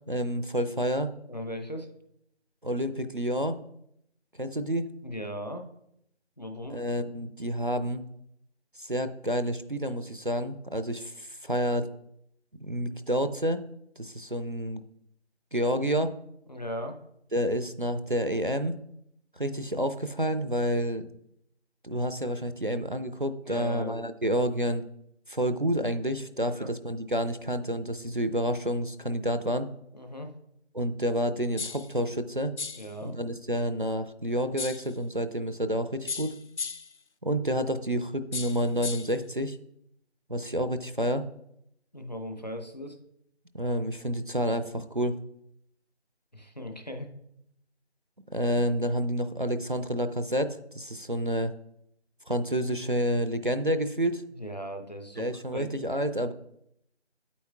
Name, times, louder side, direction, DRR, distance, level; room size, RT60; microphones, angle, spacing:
voice 1, 0.1-1.1 2.6-3.6 4.4-4.9 6.7-8.0 8.8-11.9 12.6-13.6 14.0-14.8 15.5-16.1 17.3-18.8 19.4-21.1 21.8-24.8 25.3-29.7 30.7-32.5 33.0-36.3 37.2-39.6 40.3-41.2 43.5-45.2 48.3-51.5 52.3-54.2 55.2-56.3, equal, 50° right, 10 dB, 0.4 m, -29 dB
voice 2, 1.3-1.9 5.0-5.7 6.4-6.8 16.5-17.0 23.5-24.1 26.4-26.7 29.9-30.3 32.7-33.2 41.9-43.0 46.3-47.1 54.3-55.7, equal, 40° left, 5 dB, 0.7 m, -38 dB
sound 1, 31.6-31.9 32.6-32.9 34.6-34.9 36.1-37.0 38.3-39.2, left 5 dB, 80° left, 0.6 m, -36 dB
8.9 x 8.4 x 2.3 m, 0.77 s
figure-of-eight pair, 170°, 34 cm